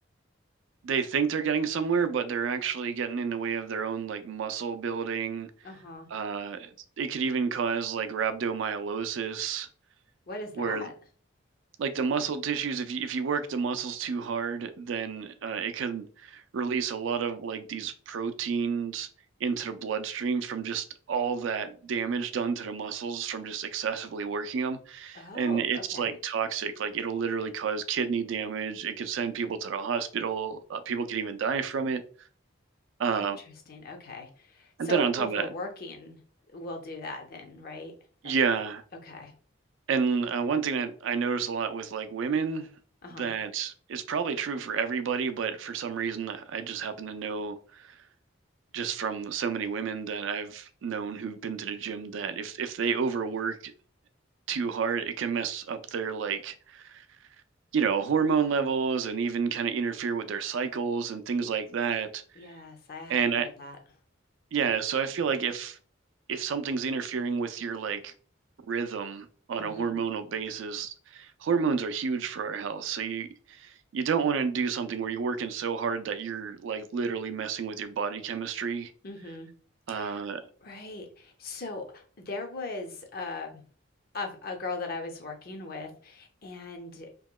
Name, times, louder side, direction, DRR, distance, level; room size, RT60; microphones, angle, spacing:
voice 1, 0.8-5.5 6.1-9.7 10.6-10.9 11.8-19.1 19.4-32.0 33.0-33.4 34.8-35.5 38.2-38.8 39.9-42.7 43.2-48.0 48.7-53.7 54.5-57.1 57.7-62.2 63.1-63.5 64.5-65.8 66.3-68.1 68.7-78.9 79.9-80.4, right 6 dB, 70° right, 0.3 m, -30 dB
voice 2, 5.6-6.1 10.3-10.9 25.1-26.2 33.2-33.3 33.7-36.2 36.5-37.9 38.2-38.3 39.0-39.3 43.0-43.3 62.4-63.8 69.6-69.9 79.0-79.5 79.9-80.2 80.6-83.6 84.1-87.1, left 3 dB, 45° left, 0.6 m, -39 dB
2.9 x 2.8 x 2.2 m
head